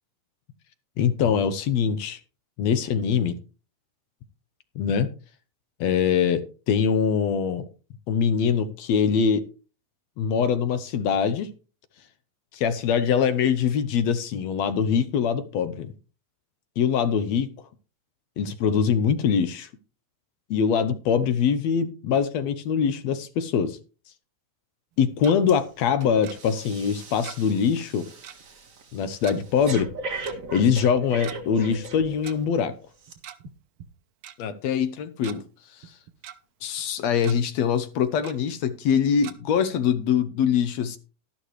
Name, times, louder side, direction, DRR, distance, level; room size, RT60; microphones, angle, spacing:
voice 1, 1.0-2.2 2.6-3.4 4.8-5.1 5.8-7.6 8.1-9.5 10.2-11.5 12.5-15.9 16.8-17.7 18.4-19.7 20.5-23.8 25.0-28.1 28.9-29.9 30.3-32.7 34.4-36.0 36.6-41.0, left 7 dB, 70° left, 1.8 m, -23 dB
Tick-tock, 24.9-25.4 26.2-26.4 27.2-27.6 27.8-27.9 28.2-28.4 29.2-29.4 30.2-30.4 31.1-31.4 32.2-32.3 33.1-33.5 33.8-33.9 34.2-34.4 34.9-35.4 35.8-36.4 36.8-36.9 37.2-37.4 38.2-38.4 39.2-39.3, right 11 dB, 80° right, 1.1 m, -41 dB
Breathing, 25.5-25.7 26.0-32.4 33.0-33.1, right 3 dB, 40° right, 1.3 m, -39 dB
12.0 x 11.5 x 3.2 m
omnidirectional pair, 3.5 m